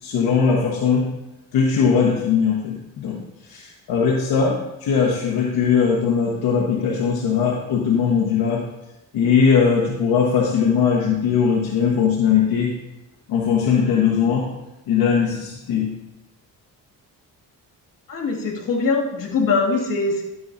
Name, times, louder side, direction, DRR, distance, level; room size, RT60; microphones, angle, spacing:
voice 1, 0.0-1.1 1.5-8.7 9.1-12.8 13.3-14.5 14.9-16.0, left 6 dB, 80° left, -4 dB, 1.4 m, -20 dB
voice 2, 18.1-20.2, left 4 dB, 65° left, -1 dB, 2.4 m, -22 dB
12.5 x 6.7 x 2.7 m, 0.96 s
cardioid pair, 80°, 36 cm